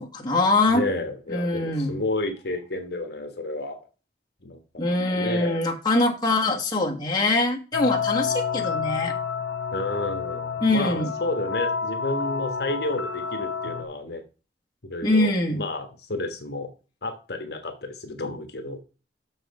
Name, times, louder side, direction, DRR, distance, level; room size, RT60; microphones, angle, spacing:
voice 1, 0.0-0.8 1.3-2.0 4.8-9.1 10.6-11.1 15.0-15.6, left 2 dB, 25° left, -1 dB, 1.5 m, -23 dB
voice 2, 0.6-3.8 4.4-5.6 9.7-14.2 14.8-16.7 17.0-18.8, left 2 dB, 60° left, 6 dB, 1.3 m, -31 dB
sound 1, 7.7-13.9, left 6 dB, 85° left, 1.2 m, -29 dB
6.5 x 6.3 x 4.8 m, 0.33 s
head